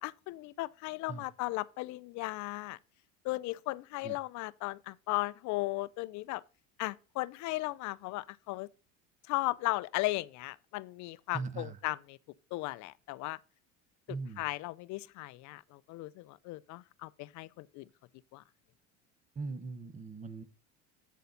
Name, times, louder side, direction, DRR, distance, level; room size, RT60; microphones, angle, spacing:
voice 1, 0.0-2.8 3.2-6.4 6.8-8.7 9.3-12.2 12.5-13.4 14.4-17.8 18.3-18.4, left 20 dB, 55° left, 0.5 m, -36 dB
voice 2, 11.3-11.8 14.1-14.4 19.4-20.4, right 4 dB, 20° right, 0.9 m, -40 dB
8.2 x 6.7 x 3.9 m
supercardioid pair, 120°, 35 cm